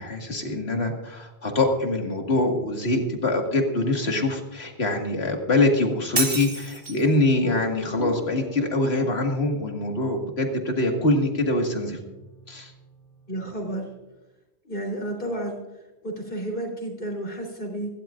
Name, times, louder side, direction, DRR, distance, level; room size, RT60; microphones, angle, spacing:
voice 1, 0.0-12.0 12.5-12.7, left 2 dB, 70° left, 2 dB, 2.2 m, -24 dB
Shatter, 6.2-7.1, right 3 dB, 45° right, 1.8 m, -28 dB
sound 1, 7.4-14.0, equal, 75° right, 3.4 m, -43 dB
voice 2, 13.3-13.9 14.6-15.6 16.0-17.9, right 1 dB, 55° left, 1 dB, 3.9 m, -31 dB
25.5 x 12.5 x 2.5 m, 1.0 s
omnidirectional pair, 1.1 m